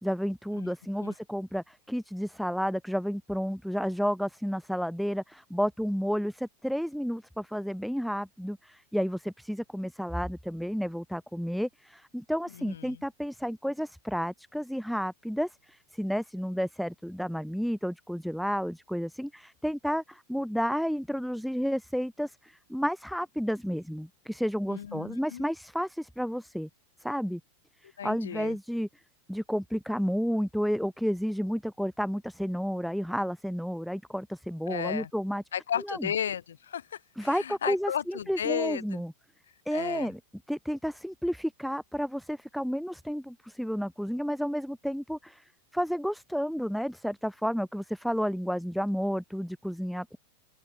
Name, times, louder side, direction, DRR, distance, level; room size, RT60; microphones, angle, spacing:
voice 1, 0.0-26.7 27.0-27.4 27.8-28.9 29.3-35.4 35.9-36.1 37.2-39.1 39.7-40.2 40.5-50.2, equal, ahead, 4.6 m, -31 dB
voice 2, 12.5-13.0 24.7-25.4 28.0-28.6 34.7-35.1 35.5-39.0 39.7-40.1, left 9 dB, 65° left, 4.1 m, -34 dB
open air
figure-of-eight pair, 90°, 0 cm